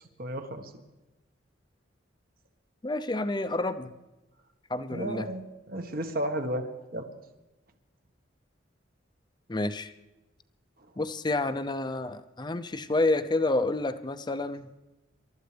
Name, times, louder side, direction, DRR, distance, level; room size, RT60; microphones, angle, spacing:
voice 1, 0.2-0.7 4.9-7.1, right 1 dB, 50° right, 6 dB, 1.5 m, -33 dB
voice 2, 2.8-3.9 4.7-5.3 9.5-9.9 11.0-14.7, left 2 dB, 25° left, 10 dB, 0.6 m, -29 dB
27.0 x 13.0 x 3.4 m, 1.0 s
head